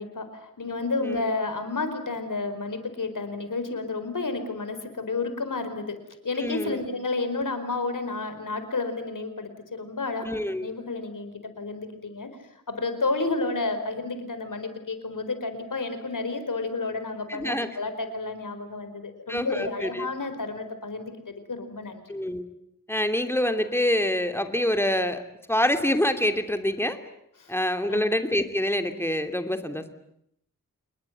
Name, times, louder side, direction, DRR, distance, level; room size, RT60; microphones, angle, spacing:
voice 1, 0.0-6.0 6.2-10.3 10.6-12.3 12.7-22.1 27.4-27.6 27.9-28.0, left 3 dB, 75° left, 9 dB, 4.7 m, -31 dB
voice 2, 6.4-6.8 10.2-10.7 17.3-17.7 19.3-20.1 22.1-22.4 22.9-25.2 25.5-27.0 27.5-29.9, left 1 dB, 5° left, 8 dB, 2.8 m, -26 dB
28.0 x 21.0 x 9.3 m, 0.75 s
wide cardioid pair, 80°, 32 cm